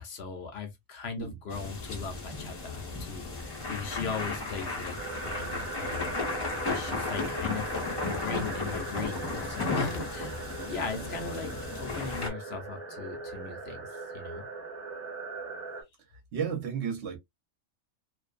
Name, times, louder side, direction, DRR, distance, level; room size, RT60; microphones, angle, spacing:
voice 1, 0.0-5.0 5.2-6.3 6.7-10.4 10.7-13.9 14.1-14.4, left 5 dB, 60° left, 0.7 m, -38 dB
sound 1, 1.5-12.3, left 3 dB, 25° left, 0.7 m, -34 dB
sound 2, 5.0-15.8, right 4 dB, 30° right, 0.9 m, -40 dB
voice 2, 16.3-17.2, right 7 dB, 60° right, 0.9 m, -33 dB
2.5 x 2.2 x 2.4 m
omnidirectional pair, 1.4 m